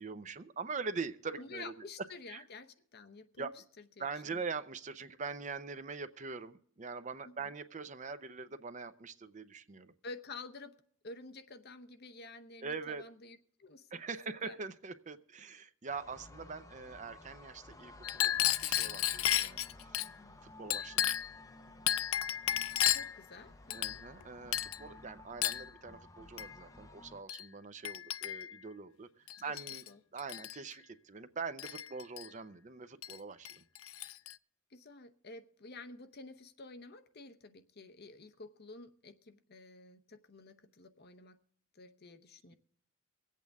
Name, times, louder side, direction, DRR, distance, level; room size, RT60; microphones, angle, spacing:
voice 1, 0.0-1.9 2.3-2.4 3.4-3.5 4.0-9.9 12.6-13.0 13.9-20.0 20.4-21.1 23.7-29.8 30.1-33.6, right 4 dB, 35° right, 11 dB, 0.6 m, -43 dB
voice 2, 1.4-3.5 4.0-4.1 4.3-4.4 7.2-7.4 10.0-10.7 11.0-14.0 14.4-14.6 22.9-24.0 29.4-29.6 29.9-30.0 34.7-41.4 41.7-42.5, left 3 dB, 50° left, 8 dB, 0.8 m, -50 dB
sound 1, 15.9-27.2, left 2 dB, 15° left, 0.8 m, -55 dB
Chink clink, 18.0-20.1 20.7-21.4 21.9-23.2 23.7-24.2 24.5-24.8 25.4-25.7 26.4-26.5 27.3-27.4 27.8-28.6 29.3-29.9 30.2-30.6 31.6-32.3 33.0-33.2 33.5-34.3, left 12 dB, 85° left, 0.5 m, -33 dB
24.5 x 8.4 x 3.5 m, 0.64 s
head